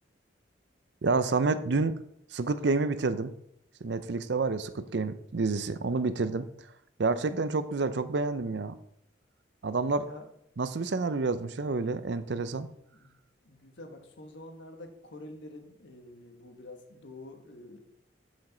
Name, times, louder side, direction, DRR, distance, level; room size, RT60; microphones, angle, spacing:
voice 1, 1.0-1.9 2.3-3.3 3.8-6.5 7.0-8.7 9.6-10.1 10.6-12.7, right 3 dB, 65° right, 12 dB, 0.5 m, -29 dB
voice 2, 13.4-17.8, left 1 dB, 75° left, 5 dB, 1.2 m, -47 dB
13.0 x 5.1 x 3.9 m, 0.74 s
head